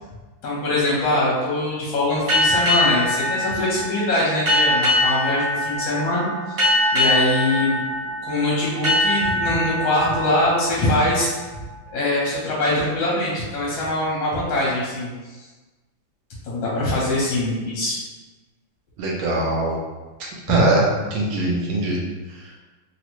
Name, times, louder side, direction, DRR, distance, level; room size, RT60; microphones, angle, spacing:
voice 1, 0.4-6.6 6.9-7.8 8.2-11.3 11.9-15.1 16.4-18.0, left 1 dB, 70° left, -6 dB, 1.5 m, -23 dB
sound 1, 2.3-11.6, left 1 dB, 50° right, 1.1 m, -23 dB
voice 2, 19.0-19.8 20.5-20.8 21.1-22.0, right 2 dB, 75° right, -3 dB, 1.3 m, -21 dB
3.7 x 2.1 x 2.9 m, 1.2 s
omnidirectional pair, 2.4 m